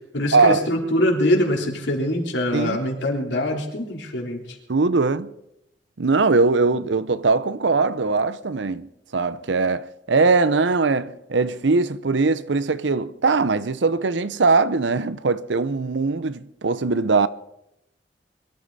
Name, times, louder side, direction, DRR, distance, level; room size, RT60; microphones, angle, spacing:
voice 1, 0.1-4.6, left 1 dB, 80° left, 3.6 m, -23 dB
voice 2, 4.7-5.3 6.0-8.9 9.1-17.3, right 4 dB, 80° right, 0.7 m, -21 dB
23.5 x 13.5 x 4.2 m
head